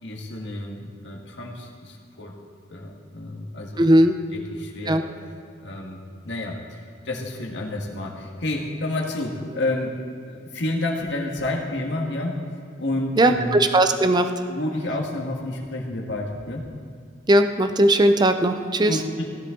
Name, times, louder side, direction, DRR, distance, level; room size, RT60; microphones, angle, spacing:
voice 1, 0.0-2.4 2.7-3.9 4.3-5.0 5.6-9.9 10.3-12.4 12.8-13.6 14.5-16.7 18.9-19.3, left 1 dB, 75° left, 0 dB, 1.8 m, -30 dB
voice 2, 3.8-4.1 4.9-5.0 13.2-14.3 17.3-19.0, right 1 dB, 25° right, 7 dB, 0.6 m, -18 dB
17.0 x 11.0 x 3.8 m, 2.4 s
head